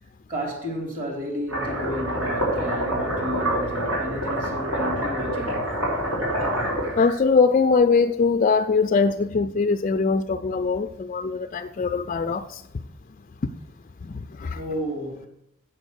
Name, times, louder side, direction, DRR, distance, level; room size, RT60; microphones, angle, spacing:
voice 1, 0.3-5.6 14.5-15.3, equal, 45° right, 3.4 m, -32 dB
sound 1, 1.5-7.1, right 1 dB, 90° right, 5.0 m, -26 dB
voice 2, 7.0-12.6 14.0-14.6, left 4 dB, 40° left, 0.4 m, -22 dB
8.6 x 7.1 x 6.8 m
head